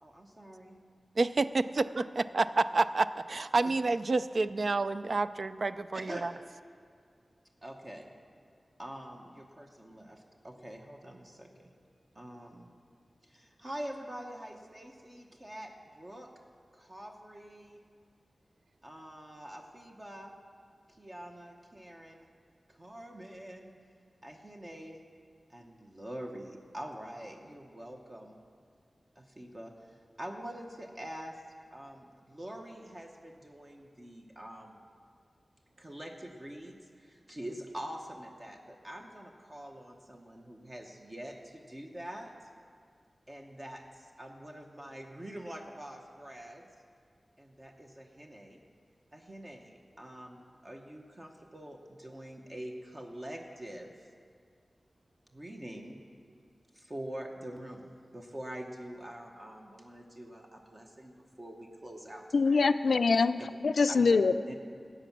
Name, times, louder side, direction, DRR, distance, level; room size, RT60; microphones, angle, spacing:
voice 1, 0.0-0.7 3.6-3.7 5.9-6.2 7.6-8.1 8.8-11.7 12.1-12.7 13.2-16.3 16.7-17.8 18.8-20.3 20.9-22.3 22.7-23.7 24.2-25.0 25.5-28.4 29.2-31.4 31.7-34.8 35.8-42.3 43.3-46.7 47.4-48.6 49.1-54.1 55.3-56.0 56.3-56.4 56.7-62.7 63.9-64.1 64.5-64.6, right 1 dB, 35° right, 1 dB, 1.0 m, -45 dB
voice 2, 1.2-6.3, right 3 dB, 65° right, 13 dB, 0.3 m, -29 dB
voice 3, 62.3-64.3, left 4 dB, 85° left, 11 dB, 0.4 m, -24 dB
13.0 x 8.2 x 5.9 m, 2.2 s
wide cardioid pair, 55°, 0 cm